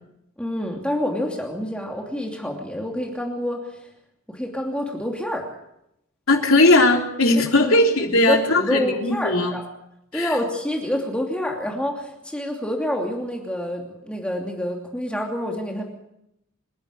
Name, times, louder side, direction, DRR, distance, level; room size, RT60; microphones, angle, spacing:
voice 1, 0.4-3.7 4.3-5.4 8.0-9.7 10.1-15.8, equal, 5° left, 0 dB, 2.8 m, -27 dB
voice 2, 6.3-9.5 10.1-10.3, left 2 dB, 80° left, 2 dB, 3.5 m, -18 dB
26.5 x 11.5 x 8.6 m, 0.80 s
head